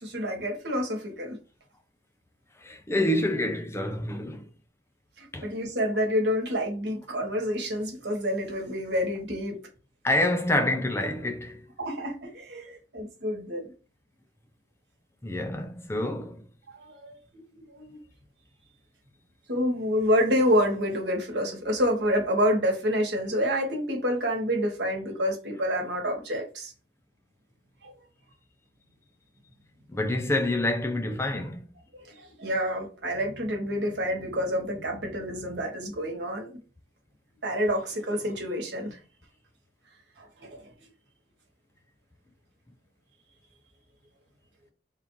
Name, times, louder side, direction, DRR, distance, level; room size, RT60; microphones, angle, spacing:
voice 1, 0.0-1.4 5.2-9.6 11.8-13.7 16.7-18.0 19.5-26.7 27.8-27.9 32.1-36.6 37.4-39.0 40.2-40.6, equal, 75° right, 1.3 m, -28 dB
voice 2, 2.6-4.5 5.3-5.5 10.0-11.7 15.2-16.4 29.9-31.6, left 1 dB, 15° left, 0.4 m, -27 dB
3.6 x 2.5 x 4.5 m
head